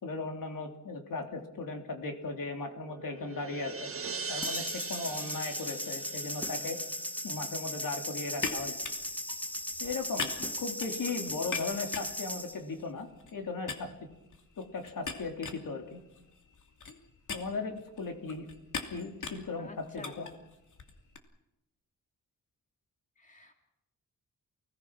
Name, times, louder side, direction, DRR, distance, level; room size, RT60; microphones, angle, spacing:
voice 1, 0.0-3.9 4.3-6.8 7.2-8.7 9.8-13.9 14.6-16.0 17.3-18.5 18.9-20.3, left 3 dB, 80° left, 3 dB, 3.5 m, -37 dB
sound 1, 2.7-7.2, right 4 dB, 40° right, 1.5 m, -41 dB
sound 2, 4.4-12.6, left 1 dB, 5° left, 0.9 m, -37 dB
sound 3, 8.4-13.4 13.7-21.2, left 5 dB, 60° left, 2.9 m, -42 dB
voice 2, 19.6-20.4 23.2-23.5, left 3 dB, 25° left, 3 dB, 3.0 m, -49 dB
29.5 x 19.5 x 6.1 m, 0.93 s
wide cardioid pair, 145°, 33 cm